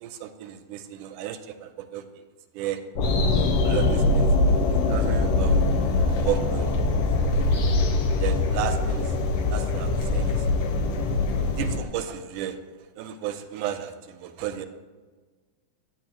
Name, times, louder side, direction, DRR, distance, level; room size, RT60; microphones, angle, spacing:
voice 1, 0.0-2.3 2.5-2.8 3.3-4.3 4.9-5.6 6.2-6.8 8.2-9.2 9.5-10.5 11.6-12.6 13.0-14.7, right 11 dB, 85° right, 8 dB, 2.1 m, -33 dB
sound 1, 3.0-11.8, left 2 dB, 90° left, 2.3 m, -23 dB
sound 2, 3.0-11.8, left 2 dB, 70° left, 1.6 m, -35 dB
9.2 x 8.5 x 2.9 m, 1.3 s
omnidirectional pair, 3.7 m